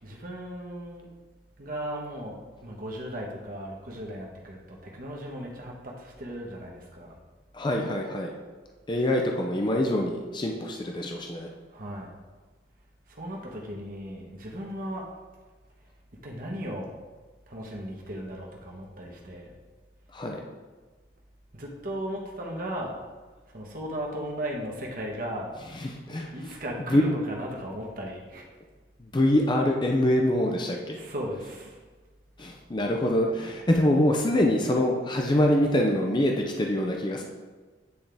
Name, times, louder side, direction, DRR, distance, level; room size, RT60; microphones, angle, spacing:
voice 1, 0.0-1.1 1.6-7.1 11.7-12.1 13.1-15.1 16.2-16.9 17.5-19.5 21.5-23.0 23.5-25.5 26.3-28.5 30.9-31.8, equal, 50° right, -1 dB, 1.2 m, -36 dB
voice 2, 7.5-8.3 8.9-11.5 20.1-20.4 25.8-26.3 26.9-27.0 29.0-31.0 32.4-37.2, left 1 dB, 25° left, 1 dB, 0.5 m, -25 dB
9.4 x 3.6 x 3.4 m, 1.3 s
head